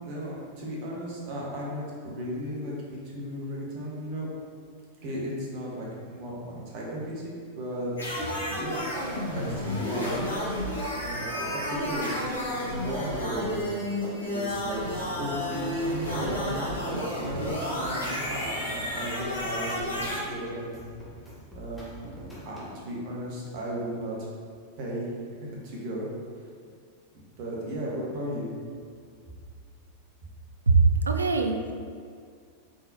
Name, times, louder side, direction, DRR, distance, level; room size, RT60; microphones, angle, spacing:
voice 1, 0.0-4.3 5.0-8.1 8.5-10.3 11.0-12.2 12.4-13.8 14.3-20.9 21.5-21.9 22.2-24.3 24.8-25.1 25.4-26.1 27.1-28.5, right 1 dB, 45° right, -4 dB, 1.0 m, -35 dB
sound 1, 8.0-20.2, left 1 dB, 70° left, 1.0 m, -31 dB
sound 2, 14.5-22.8, equal, 5° left, 1.0 m, -46 dB
voice 2, 30.7-31.7, right 4 dB, 75° right, 5 dB, 0.3 m, -22 dB
3.9 x 3.8 x 2.7 m, 2.2 s
figure-of-eight pair, 90°, 0 cm